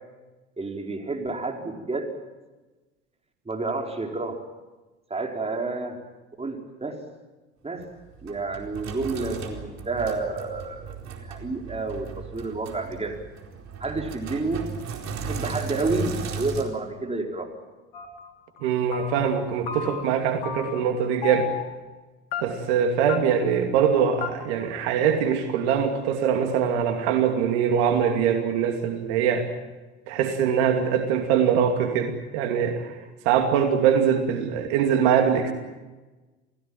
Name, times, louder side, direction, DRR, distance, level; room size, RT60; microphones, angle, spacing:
voice 1, 0.6-2.1 3.4-4.4 5.1-6.0 6.4-7.0 7.6-7.9 8.2-11.0 11.3-13.2 13.8-14.7 15.3-17.5, right 3 dB, 20° right, 2 dB, 5.1 m, -30 dB
Sink (filling or washing), 7.8-16.6, right 5 dB, 50° right, 4.4 m, -36 dB
sound 1, 17.9-18.3 18.6-19.4 19.7-20.2 20.4-21.0 21.2-21.8 22.3-22.8 23.1-23.2 23.5-23.6 23.8-23.9 24.2-24.3, left 8 dB, 70° left, 3.8 m, -33 dB
voice 2, 18.6-21.5 22.4-29.5 30.1-32.9 33.2-35.5, right 7 dB, 75° right, 5 dB, 2.6 m, -23 dB
28.5 x 17.0 x 9.0 m, 1.2 s
hypercardioid pair, 65°, 34 cm